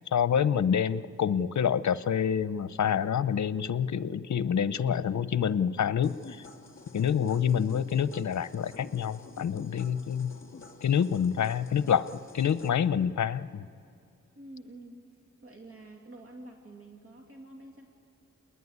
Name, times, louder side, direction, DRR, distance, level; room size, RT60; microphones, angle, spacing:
voice 1, 0.1-6.5 6.9-10.4 10.8-13.7, left 8 dB, 70° left, 15 dB, 0.8 m, -27 dB
sound 1, 6.0-12.7, left 4 dB, 45° left, 3.5 m, -49 dB
voice 2, 14.4-15.0 15.4-17.9, right 2 dB, 45° right, 1 dB, 2.7 m, -48 dB
29.0 x 21.0 x 9.6 m, 2.5 s
wide cardioid pair, 85°, 30 cm